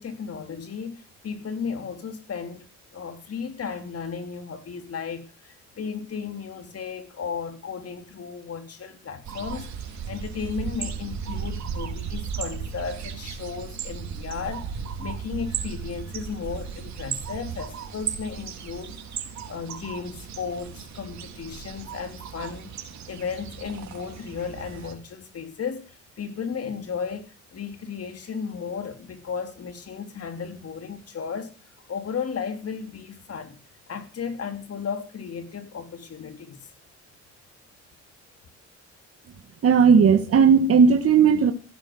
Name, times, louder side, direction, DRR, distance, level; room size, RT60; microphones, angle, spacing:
voice 1, 0.0-2.7 2.9-19.0 19.4-22.7 23.1-31.5 31.9-33.6 33.9-36.6, left 6 dB, 50° left, 3.1 m, -34 dB
sound 1, 9.2-24.9, right 7 dB, 65° right, 3.6 m, -35 dB
voice 2, 39.6-41.5, right 6 dB, 50° right, 1.6 m, -16 dB
16.5 x 9.2 x 7.8 m
cardioid pair, 90°, 30 cm